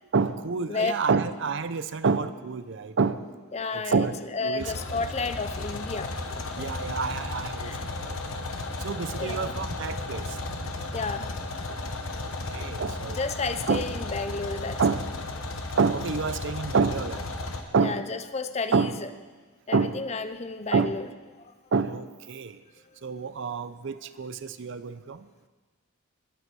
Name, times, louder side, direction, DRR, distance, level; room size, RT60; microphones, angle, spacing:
voice 1, 0.1-3.2 3.7-4.2 4.4-4.7 4.9-5.3 6.6-8.2 8.8-10.7 11.7-11.9 12.2-13.2 13.7-13.8 14.8-15.0 15.8-17.2 17.7-18.0 18.7-18.9 19.7-20.0 20.7-20.9 21.7-22.6 23.0-25.2, right 4 dB, 60° right, 13 dB, 0.5 m, -28 dB
voice 2, 3.5-4.1 4.3-6.9 7.6-7.8 9.2-9.6 10.9-11.3 13.1-14.8 17.8-18.9 19.7-21.1 21.4-21.5, left 4 dB, 30° left, 11 dB, 0.5 m, -32 dB
sound 1, 4.6-17.6, left 2 dB, 70° left, 1.3 m, -34 dB
21.0 x 7.9 x 4.7 m, 1.4 s
head